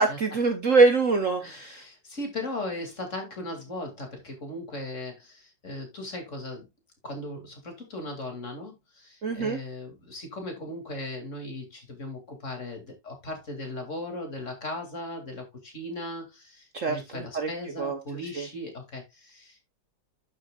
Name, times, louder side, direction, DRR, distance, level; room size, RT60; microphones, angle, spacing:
voice 1, 0.0-1.8 9.2-9.6 16.7-17.5 17.8-18.0 18.3-18.5, right 3 dB, 50° right, 1.1 m, -24 dB
voice 2, 1.4-6.7 7.0-19.7, left 1 dB, 40° left, 2.8 m, -38 dB
12.0 x 6.3 x 2.3 m
omnidirectional pair, 2.0 m